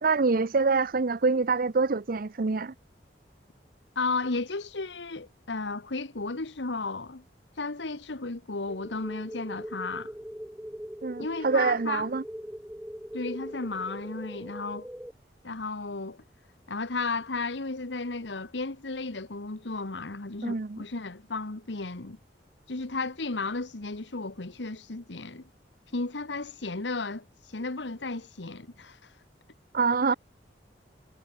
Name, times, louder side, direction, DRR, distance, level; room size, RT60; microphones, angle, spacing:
voice 1, 0.0-2.7 11.0-12.2 20.4-20.8 29.7-30.1, right 4 dB, 55° right, 0.6 m, -25 dB
voice 2, 3.9-7.2 7.6-10.1 11.2-12.0 13.1-14.9 15.4-16.2 16.7-22.2 22.7-25.4 25.9-29.1, left 3 dB, 80° left, 1.4 m, -34 dB
sound 1, 8.7-15.1, equal, 5° right, 1.4 m, -41 dB
head